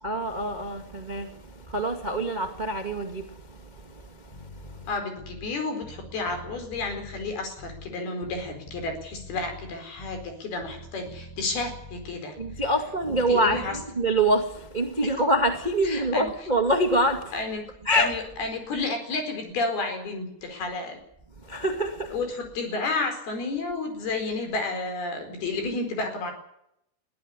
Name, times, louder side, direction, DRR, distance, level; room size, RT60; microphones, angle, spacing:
voice 1, 0.0-4.9 12.4-17.4 17.8-18.2 21.4-22.2, right 1 dB, 20° right, 1.1 m, -26 dB
Bass guitar, 4.3-5.6 5.8-10.4 10.6-12.8 13.0-13.9, left 1 dB, 10° left, 1.2 m, -45 dB
voice 2, 4.9-12.4 13.1-13.7 15.0-15.1 15.9-16.3 17.3-17.6 17.9-21.0 22.1-26.3, left 3 dB, 65° left, 6.4 m, -31 dB
22.0 x 15.0 x 9.8 m
omnidirectional pair, 4.7 m